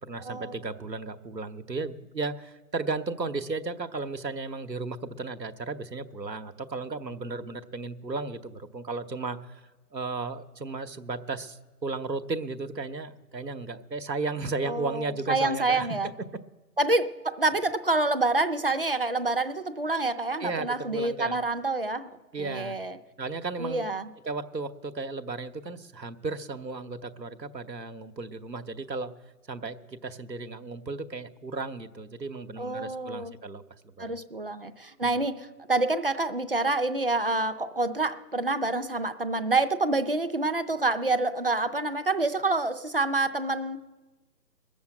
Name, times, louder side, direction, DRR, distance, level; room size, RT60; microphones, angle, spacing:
voice 1, 0.0-9.6 9.9-15.9 20.4-21.4 22.3-22.8 23.2-23.9 24.2-29.1 29.5-34.2 35.0-35.2, right 3 dB, 90° right, 8 dB, 1.0 m, -35 dB
voice 2, 14.6-16.1 16.8-23.0 23.6-24.1 32.6-33.3 34.0-43.8, right 2 dB, 35° right, 9 dB, 0.5 m, -27 dB
20.5 x 7.0 x 7.8 m, 1.2 s
figure-of-eight pair, 140°, 49 cm